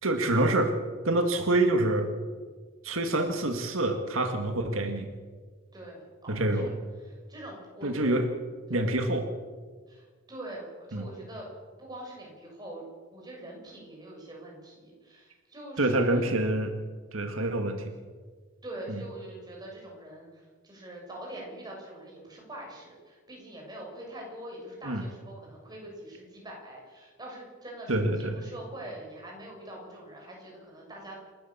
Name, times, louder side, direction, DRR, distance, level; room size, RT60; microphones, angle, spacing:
voice 1, 0.0-0.7 1.0-2.1 2.8-5.1 6.3-6.7 7.8-8.3 8.7-9.3 10.9-11.1 15.8-16.7 17.1-17.9 24.8-25.0 27.9-28.4, right 2 dB, 80° right, 5 dB, 2.1 m, -26 dB
voice 2, 5.7-6.7 7.0-8.2 8.7-9.0 9.9-11.5 11.8-12.8 13.1-16.3 18.6-31.2, right 1 dB, 20° right, -2 dB, 6.8 m, -44 dB
28.5 x 13.5 x 7.3 m, 1.5 s
head